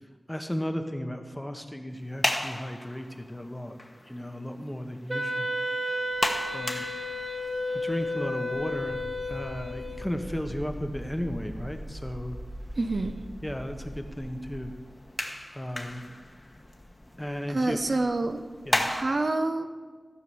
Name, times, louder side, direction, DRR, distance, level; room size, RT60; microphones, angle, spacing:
voice 1, 0.3-3.8 4.1-5.5 6.5-6.8 7.7-9.0 9.3-12.4 13.4-14.7 15.5-16.1 17.2-17.8 18.7-18.9, equal, 10° left, 6 dB, 1.1 m, -34 dB
sound 1, 1.9-19.0, left 1 dB, 30° left, 1.3 m, -37 dB
Wind instrument woodwind instrument, 5.1-10.3, left 1 dB, 20° right, 0.7 m, -32 dB
sound 2, 8.8-14.7, right 1 dB, 35° right, 1.0 m, -42 dB
voice 2, 12.8-13.2 17.5-18.4 18.8-19.7, right 2 dB, 55° right, 7 dB, 0.7 m, -27 dB
14.0 x 6.0 x 7.0 m, 1.5 s
wide cardioid pair, 70°, 0 cm